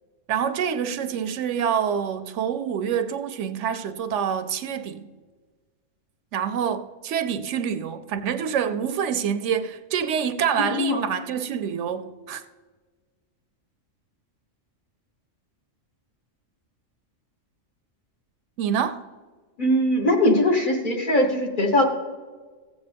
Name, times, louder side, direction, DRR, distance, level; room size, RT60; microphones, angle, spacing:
voice 1, 0.3-5.0 6.3-12.4 18.6-19.0, right 8 dB, 70° right, 0.9 m, -26 dB
voice 2, 10.7-11.1 19.6-21.8, left 1 dB, 40° left, 1.3 m, -21 dB
15.0 x 8.0 x 3.4 m
omnidirectional pair, 1.3 m